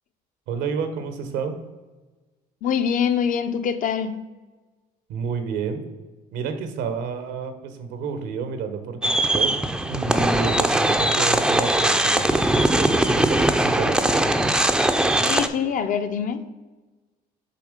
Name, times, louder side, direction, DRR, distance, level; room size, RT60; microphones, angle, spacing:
voice 1, 0.5-1.5 5.1-5.8 6.3-9.6 9.9-14.2, right 5 dB, 90° right, 8 dB, 0.9 m, -30 dB
voice 2, 2.6-4.2 15.2-16.4, left 7 dB, 50° left, 9 dB, 0.6 m, -24 dB
sound 1, 9.0-15.5, right 1 dB, 5° right, 0.4 m, -20 dB
6.9 x 3.6 x 4.9 m, 1.2 s
cardioid pair, 110°, 17 cm